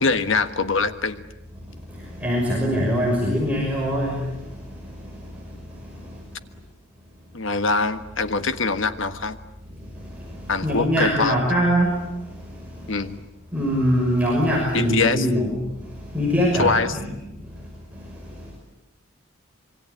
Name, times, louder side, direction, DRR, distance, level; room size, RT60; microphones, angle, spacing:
voice 1, 0.0-1.2 7.3-9.4 10.5-11.4 12.9-13.2 14.7-15.3 16.5-17.0, left 4 dB, 70° left, 10 dB, 1.6 m, -23 dB
voice 2, 2.2-4.2 10.6-11.9 13.5-15.5 16.1-17.1, equal, 5° right, -3 dB, 6.1 m, -22 dB
26.5 x 24.0 x 8.6 m, 1.0 s
head